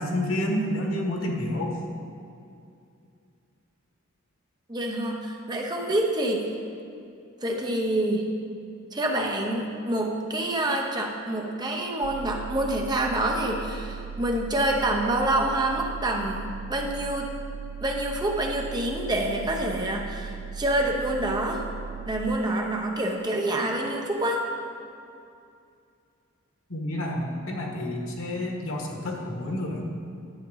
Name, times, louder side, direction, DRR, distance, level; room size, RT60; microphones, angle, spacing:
voice 1, 0.0-1.8 26.7-29.8, left 1 dB, 90° left, 0 dB, 1.5 m, -29 dB
voice 2, 4.7-6.5 7.4-8.3 8.9-17.3 17.8-21.6 22.1-24.5, right 1 dB, 20° right, 1 dB, 0.9 m, -27 dB
sound 1, 12.0-22.4, right 6 dB, 65° right, 0.4 m, -38 dB
11.0 x 8.1 x 4.0 m, 2.5 s
head